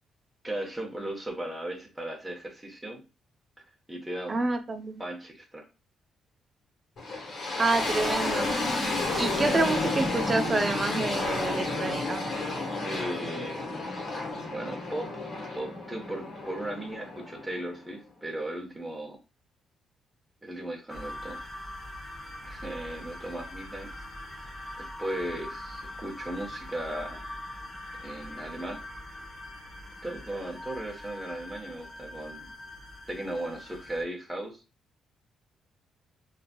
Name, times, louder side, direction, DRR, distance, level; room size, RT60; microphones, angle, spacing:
voice 1, 0.4-3.0 3.9-4.7 5.0-5.6 12.8-13.9 14.5-15.1 15.6-19.2 20.4-21.4 22.4-23.9 24.8-27.2 27.9-28.8 30.0-32.5 33.1-34.6, right 1 dB, 10° right, 1.0 m, -37 dB
voice 2, 4.3-5.0 7.6-8.5 9.2-12.2, right 3 dB, 25° right, 0.5 m, -28 dB
sound 1, 7.0-17.9, left 2 dB, 60° left, 1.2 m, -31 dB
sound 2, 20.9-34.0, left 1 dB, 25° left, 0.9 m, -42 dB
3.1 x 2.6 x 2.2 m
cardioid pair, 90°, 0 cm